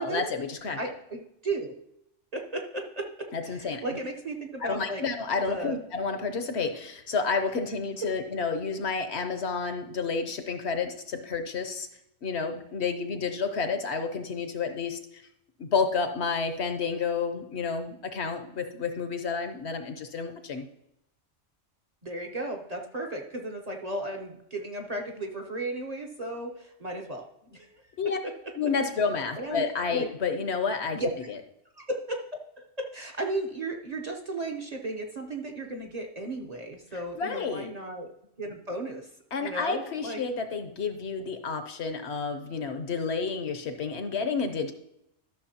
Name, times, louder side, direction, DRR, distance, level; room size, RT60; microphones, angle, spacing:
voice 1, 0.0-0.8 3.3-3.8 4.6-11.9 12.2-15.0 15.6-20.6 28.0-28.2 28.6-31.0 31.3-31.4 36.9-37.7 39.3-44.7, left 5 dB, 60° left, 6 dB, 1.0 m, -30 dB
voice 2, 0.8-1.7 2.3-5.0 5.5-5.8 22.0-27.7 29.4-29.6 29.9-30.1 30.9-31.1 31.8-32.2 32.6-38.1 38.4-39.1 39.4-40.2, right 2 dB, 35° right, 1 dB, 0.8 m, -35 dB
13.0 x 6.0 x 2.8 m, 0.78 s
omnidirectional pair, 1.3 m